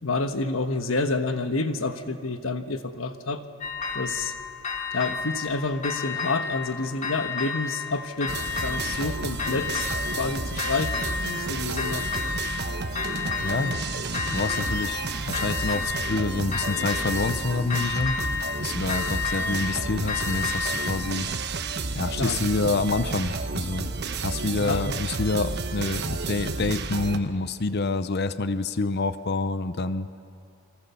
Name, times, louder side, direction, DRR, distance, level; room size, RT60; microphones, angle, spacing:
voice 1, 0.0-3.4 3.9-4.3 4.9-8.3 8.6-9.9 10.2-12.0 22.2-22.8 24.5-25.0, left 3 dB, 70° left, 8 dB, 1.4 m, -29 dB
sound 1, 3.6-4.3 4.6-5.5 5.8-6.7 7.0-7.9 8.2-9.1 9.4-10.2 10.6-11.4 11.8-12.6 13.0-13.8 14.1-15.0 15.3-16.2 16.5-17.4 17.7-18.6 18.9-20.9, left 5 dB, 35° left, 2.7 m, -30 dB
sound 2, 8.3-27.2, right 3 dB, 55° right, 1.1 m, -31 dB
voice 2, 13.4-13.7 14.3-18.2 18.6-21.3 21.9-23.9 24.2-30.1, left 3 dB, 50° left, 12 dB, 0.7 m, -27 dB
28.5 x 23.0 x 7.1 m, 2.5 s
head